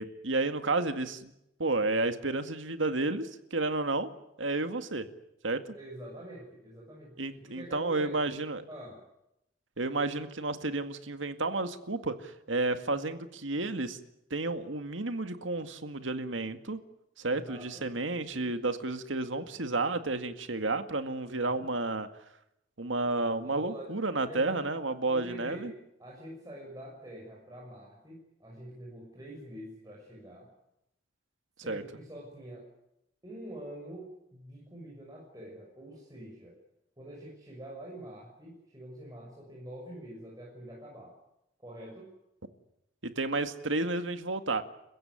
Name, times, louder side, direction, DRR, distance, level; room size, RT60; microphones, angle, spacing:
voice 1, 0.0-1.3 1.6-4.1 4.4-5.1 5.4-5.6 7.2-8.6 9.8-14.0 14.3-16.8 17.2-22.1 22.8-25.7 31.7-31.8 43.0-44.6, right 2 dB, 80° right, 9 dB, 2.0 m, -31 dB
voice 2, 5.7-8.4 8.7-9.0 17.3-17.9 18.3-18.6 21.2-21.7 23.4-24.0 24.3-24.6 25.1-30.5 31.6-32.6 33.2-36.6 37.0-41.1 41.6-42.1, right 1 dB, 20° right, -3 dB, 6.5 m, -46 dB
29.5 x 15.5 x 9.6 m, 0.83 s
head